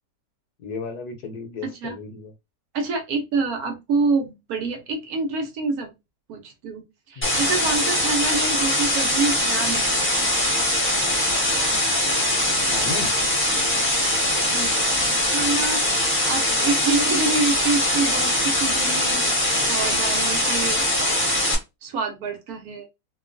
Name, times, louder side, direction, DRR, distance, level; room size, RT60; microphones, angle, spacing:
voice 1, 0.6-2.3 7.2-7.4 12.7-13.1, left 4 dB, 70° left, 1.1 m, -34 dB
voice 2, 1.6-1.9 2.7-5.9 6.3-10.0 14.5-14.8 15.3-15.9 16.2-20.9 21.8-22.9, right 4 dB, 65° right, 1.1 m, -27 dB
sound 1, 7.2-21.5, left 1 dB, 10° left, 0.6 m, -22 dB
2.9 x 2.2 x 2.5 m
omnidirectional pair, 1.8 m